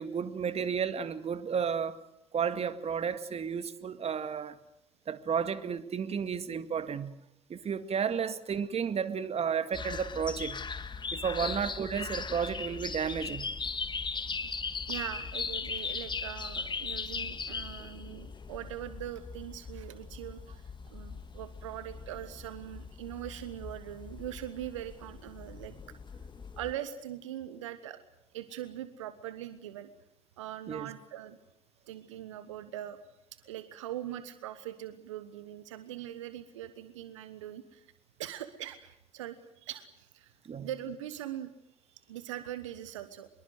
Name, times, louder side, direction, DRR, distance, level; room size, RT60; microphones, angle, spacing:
voice 1, 0.0-2.0 2.3-4.6 5.1-7.1 7.5-10.6 11.1-13.4 30.7-30.9 40.4-40.7, right 7 dB, 40° right, 12 dB, 2.0 m, -32 dB
sound 1, 9.7-26.7, left 5 dB, 30° left, 1.7 m, -39 dB
voice 2, 14.9-25.7 26.6-28.0 28.3-29.9 30.4-31.4 31.9-33.0 33.3-37.8 38.2-40.3 40.6-41.5 42.1-43.3, right 12 dB, 80° right, 12 dB, 1.2 m, -41 dB
25.0 x 22.5 x 8.0 m, 0.77 s
figure-of-eight pair, 55°, 16 cm